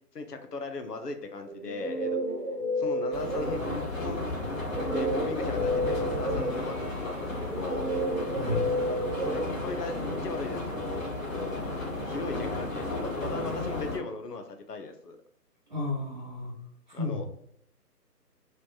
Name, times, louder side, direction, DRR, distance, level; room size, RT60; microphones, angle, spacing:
voice 1, 0.1-2.2 2.8-7.9 8.8-11.1 11.3-11.6 12.1-15.2 16.9-17.2, left 3 dB, 70° left, 6 dB, 0.8 m, -38 dB
Guitar, 1.5-4.0 4.7-10.2, equal, 35° left, 0.8 m, -31 dB
sound 1, 3.1-14.0, left 2 dB, 55° left, 1.3 m, -33 dB
voice 2, 15.7-16.5 16.9-17.2, left 2 dB, 30° right, -4 dB, 0.7 m, -32 dB
3.2 x 2.9 x 2.4 m, 0.71 s
figure-of-eight pair, 145°, 49 cm